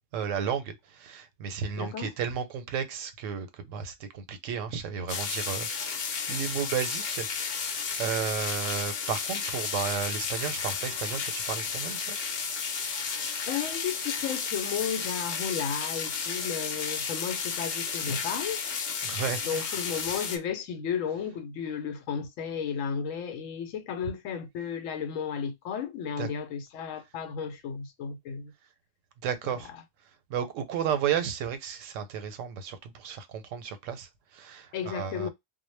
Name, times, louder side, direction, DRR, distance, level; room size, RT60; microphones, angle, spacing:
voice 1, 0.1-7.3 7.6-12.2 19.0-19.7 26.2-26.3 29.2-29.7 30.3-35.3, right 7 dB, 85° right, 0.9 m, -33 dB
voice 2, 1.8-2.1 13.5-18.6 19.4-28.5 29.4-29.8 34.7-35.3, left 7 dB, 85° left, 1.0 m, -33 dB
sound 1, 5.1-20.4, left 6 dB, 60° left, 0.7 m, -33 dB
2.1 x 2.0 x 3.1 m
omnidirectional pair, 1.3 m